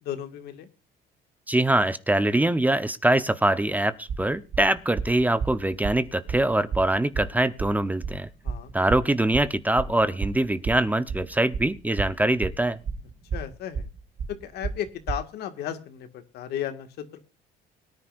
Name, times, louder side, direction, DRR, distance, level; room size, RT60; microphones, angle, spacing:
voice 1, 0.0-0.7 8.4-8.7 13.3-13.9 14.3-17.2, left 10 dB, 75° left, 8 dB, 1.8 m, -34 dB
voice 2, 1.5-8.3 8.7-12.8, right 1 dB, 10° right, 13 dB, 0.8 m, -23 dB
sound 1, 4.1-15.2, right 5 dB, 45° right, 1.8 m, -31 dB
23.0 x 10.0 x 2.5 m, 0.32 s
cardioid pair, 110°, 17 cm